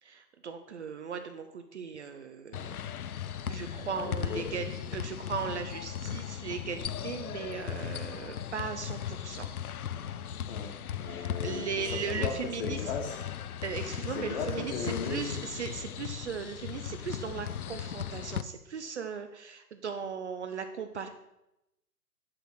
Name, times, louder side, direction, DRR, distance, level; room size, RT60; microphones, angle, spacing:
voice 1, 0.0-2.8 3.5-9.5 11.1-12.8 13.6-21.1, right 6 dB, 45° right, 8 dB, 0.7 m, -38 dB
sound 1, 2.5-18.4, left 9 dB, 65° left, 0.6 m, -37 dB
voice 2, 3.9-4.5 10.5-13.2 14.1-15.4, left 5 dB, 35° left, 2 dB, 1.5 m, -37 dB
10.5 x 4.1 x 6.1 m, 0.89 s
figure-of-eight pair, 125°, 48 cm